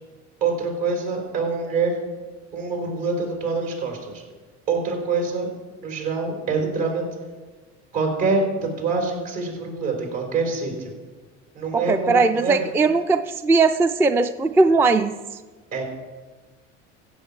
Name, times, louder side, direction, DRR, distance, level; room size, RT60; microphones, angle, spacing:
voice 1, 0.4-2.0 2.5-4.2 4.7-5.5 5.8-7.1 7.9-10.9 11.5-12.7 15.7-15.8, right 4 dB, 65° right, 2 dB, 3.8 m, -25 dB
voice 2, 11.7-15.1, right 3 dB, 5° right, 10 dB, 0.4 m, -19 dB
15.5 x 7.1 x 4.8 m, 1.3 s
hypercardioid pair, 70°, 36 cm